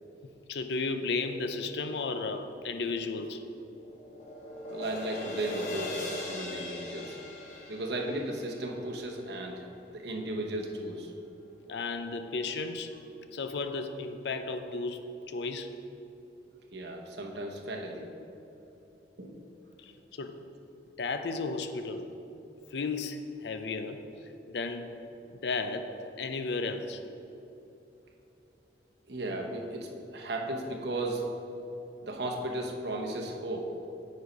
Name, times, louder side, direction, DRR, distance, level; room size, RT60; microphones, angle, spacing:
voice 1, 0.5-3.4 11.7-12.9 13.3-15.7 19.8-20.4 21.0-22.1 22.7-24.0 24.5-25.0 25.4-27.0, left 3 dB, 70° left, 8 dB, 0.5 m, -34 dB
sound 1, 3.2-9.6, left 2 dB, 45° left, 1.2 m, -40 dB
voice 2, 4.7-7.2 7.7-9.5 9.9-11.1 16.7-18.1 19.2-19.3 29.1-31.2 32.0-33.7, right 1 dB, 65° right, 1 dB, 1.0 m, -35 dB
9.4 x 4.2 x 5.2 m, 2.9 s
head